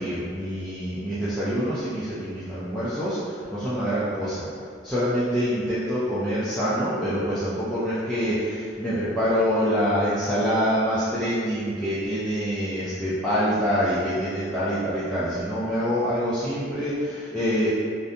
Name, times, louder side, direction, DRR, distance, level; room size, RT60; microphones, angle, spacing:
voice 1, 0.0-4.5 4.8-17.7, equal, 5° left, -13 dB, 0.3 m, -25 dB
2.5 x 2.1 x 2.6 m, 2.1 s
head